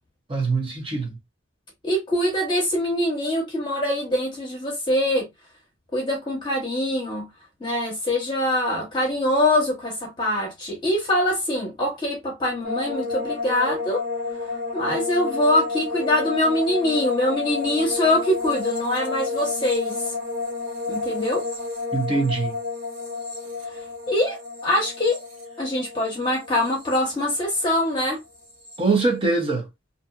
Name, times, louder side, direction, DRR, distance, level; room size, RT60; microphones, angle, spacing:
voice 1, 0.3-1.2 21.9-22.6 28.8-29.7, right 3 dB, 30° right, 0.8 m, -23 dB
voice 2, 1.8-5.3 5.9-7.2 7.6-14.1 14.7-20.0 20.9-21.5 24.1-25.2 25.6-28.2, left 1 dB, 25° left, 1.0 m, -23 dB
sound 1, 12.6-27.9 28.1-28.8, left 3 dB, 70° right, 1.7 m, -31 dB
2.7 x 2.5 x 2.4 m
head